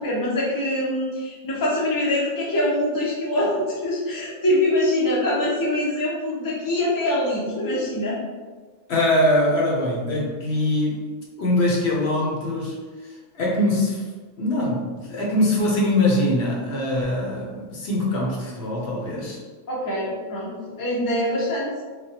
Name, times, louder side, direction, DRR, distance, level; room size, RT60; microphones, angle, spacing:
voice 1, 0.0-8.2 19.7-21.8, left 1 dB, 25° left, -5 dB, 0.5 m, -24 dB
voice 2, 8.9-11.0 11.4-12.8 13.0-14.0 14.4-19.4, left 1 dB, 65° left, -3 dB, 0.9 m, -22 dB
3.3 x 2.1 x 2.7 m, 1.4 s
omnidirectional pair, 1.2 m